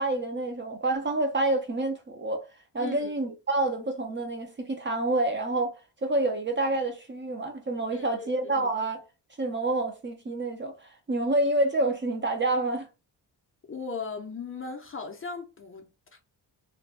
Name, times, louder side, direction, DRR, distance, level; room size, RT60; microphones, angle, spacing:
voice 1, 0.0-2.4 2.7-5.8 6.0-9.0 9.4-12.9, right 2 dB, 25° right, 0.5 m, -28 dB
voice 2, 2.8-3.1 7.9-8.7 13.7-16.2, left 4 dB, 30° left, 0.5 m, -38 dB
2.5 x 2.2 x 3.2 m
cardioid pair, 105°, 43 cm